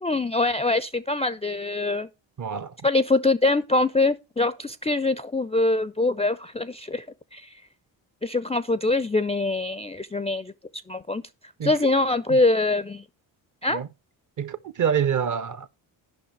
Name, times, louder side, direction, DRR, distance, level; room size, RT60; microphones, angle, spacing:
voice 1, 0.0-2.1 2.8-7.1 7.3-7.5 8.2-10.5 10.9-11.2 11.6-13.0 13.6-13.8, left 2 dB, 15° left, 0.4 m, -24 dB
voice 2, 2.4-2.8 11.6-11.7 12.3-12.4 13.7-13.9 14.4-15.7, right 8 dB, 40° right, 0.6 m, -26 dB
10.5 x 5.6 x 4.6 m
supercardioid pair, 55°, 48 cm